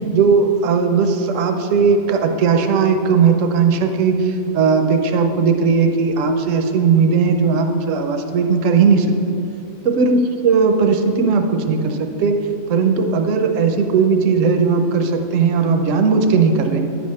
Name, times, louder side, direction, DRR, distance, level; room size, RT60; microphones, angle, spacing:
voice 1, 0.1-9.1 9.8-12.4 12.7-16.8, right 5 dB, 70° right, 5 dB, 1.0 m, -17 dB
10.0 x 3.5 x 6.4 m, 2.7 s
omnidirectional pair, 1.4 m